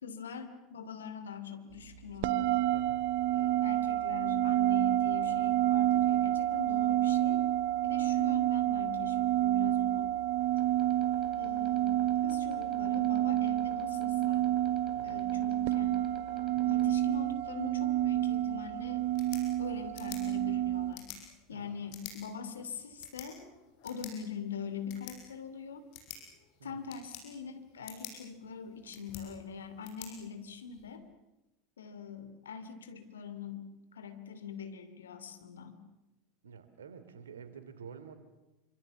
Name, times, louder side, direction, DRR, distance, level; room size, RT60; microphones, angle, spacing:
voice 1, 0.0-2.6 3.3-7.5 7.8-10.1 11.4-14.5 15.0-16.0 16.6-19.0 19.6-21.1 21.5-23.4 23.8-25.8 26.6-31.0 31.8-33.7 33.9-35.8, left 6 dB, 75° left, 9 dB, 2.7 m, -43 dB
sound 1, 2.2-20.9, right 13 dB, 60° right, 1.0 m, -29 dB
voice 2, 2.7-3.1 14.9-15.3 21.5-21.7 26.6-26.9 36.4-38.1, right 6 dB, 75° right, 10 dB, 2.8 m, -49 dB
sound 2, 10.4-16.9, left 6 dB, 35° left, 2.7 m, -55 dB
sound 3, 19.0-31.0, left 9 dB, 55° left, 6.2 m, -51 dB
27.0 x 25.5 x 7.1 m, 0.97 s
figure-of-eight pair, 80°, 0 cm